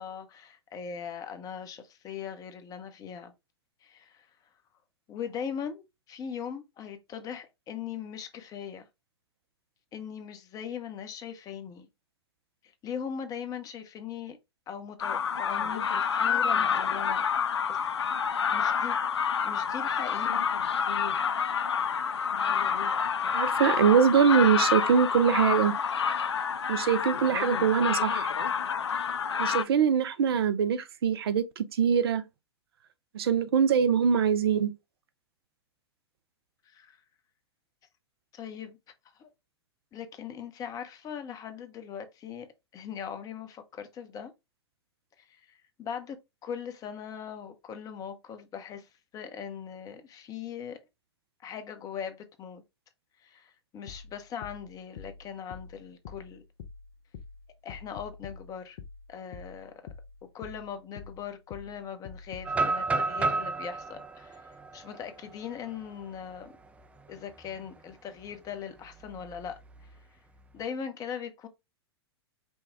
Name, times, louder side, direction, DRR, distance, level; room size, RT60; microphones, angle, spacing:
voice 1, 0.0-3.3 3.8-4.3 5.1-8.8 9.9-11.9 12.8-14.4 14.7-17.3 17.7-17.8 18.5-19.0 19.4-20.5 36.7-37.0 38.3-38.8 39.2-39.3 39.9-42.5 42.7-44.3 45.2-45.4 45.8-50.8 51.4-52.6 53.2-56.4 57.6-58.8 59.1-59.7 60.3-64.4 64.7-66.5 67.1-69.6 70.5-71.5, left 7 dB, 25° left, 0.8 m, -40 dB
sound 1, 15.0-29.6, left 7 dB, 80° left, 0.5 m, -28 dB
voice 2, 23.3-25.7 26.7-28.3 29.4-32.2 33.1-34.7, right 7 dB, 65° right, 0.6 m, -23 dB
sound 2, 53.9-62.6, left 5 dB, 55° left, 0.8 m, -47 dB
sound 3, 62.4-66.4 66.8-66.9 67.4-67.7 69.0-69.9, right 3 dB, 10° right, 0.4 m, -32 dB
5.3 x 2.3 x 3.5 m
figure-of-eight pair, 105°, 14 cm